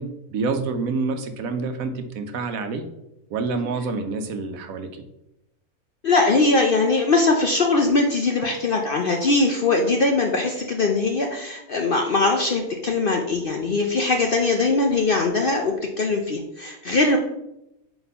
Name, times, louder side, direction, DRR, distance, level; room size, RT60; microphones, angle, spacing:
voice 1, 0.0-2.8 3.3-5.0, right 4 dB, 70° right, 8 dB, 1.1 m, -27 dB
voice 2, 6.0-17.2, left 3 dB, 55° left, 3 dB, 0.6 m, -21 dB
4.5 x 4.3 x 5.4 m, 0.86 s
omnidirectional pair, 1.5 m